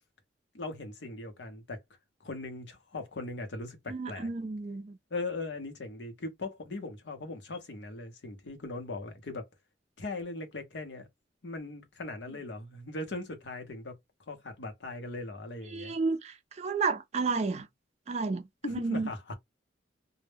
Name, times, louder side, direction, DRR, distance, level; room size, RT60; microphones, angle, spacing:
voice 1, 0.5-1.8 2.2-4.3 5.1-9.4 10.0-11.1 11.4-13.9 14.3-15.9 18.6-19.3, left 2 dB, 75° left, 0.7 m, -39 dB
voice 2, 3.9-5.0 15.7-17.7 18.1-19.1, right 4 dB, 35° right, 0.4 m, -31 dB
2.1 x 2.1 x 3.1 m
head